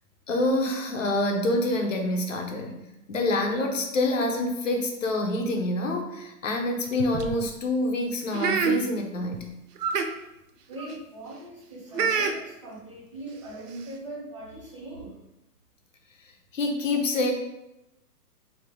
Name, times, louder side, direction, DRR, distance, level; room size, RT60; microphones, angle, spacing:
voice 1, 0.3-9.5 16.5-17.3, left 2 dB, 50° left, 3 dB, 0.8 m, -27 dB
sound 1, 6.9-7.5 8.3-8.8 9.3-9.4 9.8-10.1 10.7-11.0 11.9-12.3 13.3-13.4 13.7-13.9, right 5 dB, 70° right, 0.7 m, -26 dB
voice 2, 10.7-15.2, right 1 dB, 20° right, -10 dB, 0.6 m, -41 dB
4.9 x 2.8 x 3.5 m, 0.90 s
hypercardioid pair, 180°, 49 cm